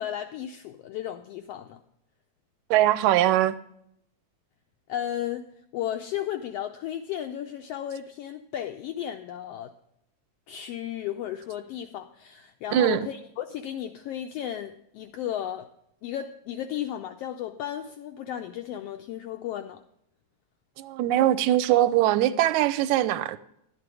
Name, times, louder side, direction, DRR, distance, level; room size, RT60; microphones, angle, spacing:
voice 1, 0.0-1.8 4.9-5.5 5.7-9.7 10.5-15.7 16.0-19.8, left 11 dB, 85° left, 1.4 m, -34 dB
voice 2, 2.7-3.6 12.7-13.0 20.8-23.4, right 13 dB, 90° right, 2.0 m, -21 dB
12.0 x 9.0 x 4.7 m
omnidirectional pair, 3.3 m